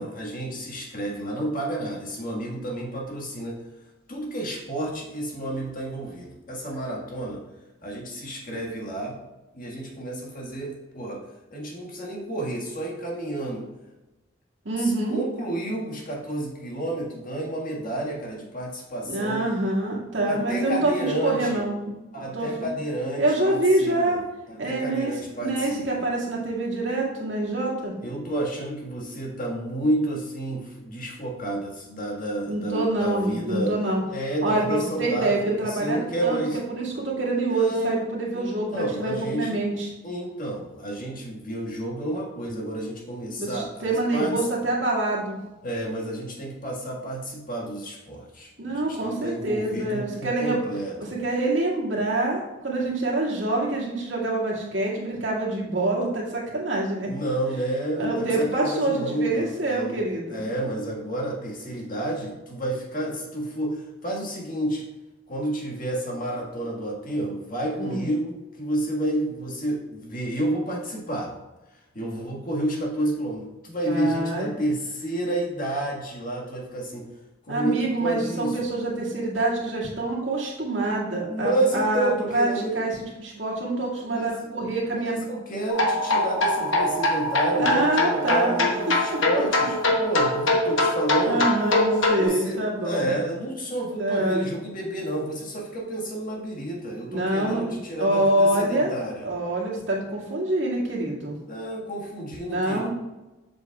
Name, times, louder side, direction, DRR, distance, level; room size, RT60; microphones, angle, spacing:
voice 1, 0.0-3.6 4.1-7.4 7.8-9.2 9.5-11.2 11.5-13.7 14.8-19.4 20.3-21.6 22.1-24.2 24.5-26.1 28.0-33.8 34.1-36.6 37.5-38.0 38.3-39.6 40.0-44.4 45.6-51.2 57.1-60.0 60.3-64.8 65.3-71.3 71.9-77.1 77.5-78.6 81.1-82.8 84.0-84.5 84.9-91.5 92.2-99.3 101.5-102.9, right 1 dB, 45° left, -2 dB, 1.7 m, -30 dB
voice 2, 14.6-15.2 19.0-21.9 22.3-22.5 23.2-24.2 24.6-25.1 25.4-27.9 32.5-34.0 34.4-36.4 36.7-39.9 43.4-45.4 48.6-50.6 51.0-57.1 58.0-60.4 67.8-68.1 73.9-74.5 77.5-82.5 82.7-82.9 83.2-85.1 87.6-88.7 91.2-93.1 94.0-94.5 97.1-98.9 99.2-101.4 102.5-102.9, right 2 dB, 70° right, -4 dB, 2.0 m, -26 dB
sound 1, 85.7-92.3, left 1 dB, 80° left, 1.0 m, -23 dB
7.6 x 6.3 x 2.4 m, 1.0 s
head